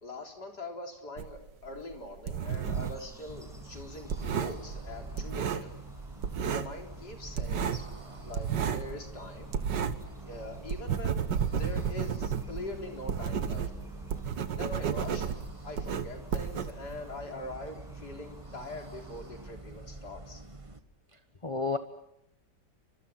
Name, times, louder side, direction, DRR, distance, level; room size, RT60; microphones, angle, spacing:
voice 1, 0.0-5.8 6.5-7.8 8.2-9.5 10.3-13.7 14.6-15.3 15.6-20.4, left 2 dB, 65° left, 3 dB, 4.6 m, -43 dB
sound 1, 1.2-3.1 3.4-5.9 6.2-6.8 7.1-10.1 10.4-17.2, right 7 dB, 80° right, 2.0 m, -32 dB
sound 2, 2.5-19.5, right 1 dB, ahead, 6.9 m, -54 dB
sound 3, 3.3-20.8, right 2 dB, 20° right, 1.5 m, -47 dB
voice 2, 21.1-21.8, left 4 dB, 20° left, 8 dB, 1.1 m, -32 dB
30.0 x 26.0 x 6.0 m, 0.78 s
omnidirectional pair, 1.9 m